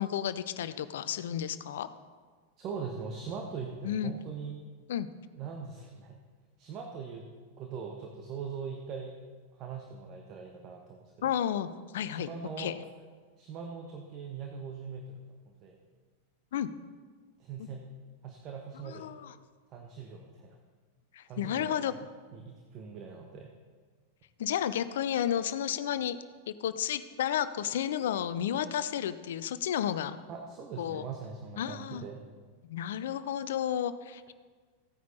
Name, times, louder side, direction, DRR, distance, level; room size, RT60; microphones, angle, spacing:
voice 1, 0.0-1.9 3.8-4.1 4.9-5.1 11.2-12.3 12.6-12.8 16.5-16.7 17.6-17.7 18.8-19.3 21.1-21.9 24.4-26.2 26.5-30.2 30.8-31.1 31.6-32.0 32.7-34.3, left 10 dB, 60° left, 14 dB, 0.6 m, -32 dB
voice 2, 2.6-4.6 5.3-6.2 6.6-7.3 7.6-9.2 9.6-11.1 12.0-12.7 13.4-15.2 15.5-15.8 17.4-17.9 18.2-19.1 19.7-20.6 21.3-22.0 22.3-23.5 30.3-32.2, right 5 dB, 35° right, 3 dB, 1.3 m, -41 dB
15.5 x 9.4 x 4.1 m, 1.5 s
figure-of-eight pair, 90°, 0 cm